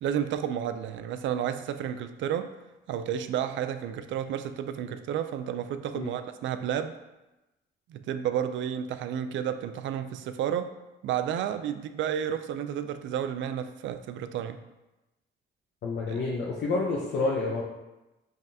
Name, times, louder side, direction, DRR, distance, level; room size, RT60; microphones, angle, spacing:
voice 1, 0.0-2.5 2.9-6.9 7.9-10.7 11.0-14.6 16.1-16.2, right 9 dB, 70° right, 10 dB, 0.4 m, -31 dB
voice 2, 15.8-17.6, left 3 dB, 65° left, -3 dB, 0.7 m, -29 dB
5.3 x 3.7 x 2.7 m, 1.0 s
cardioid pair, 90°, 20 cm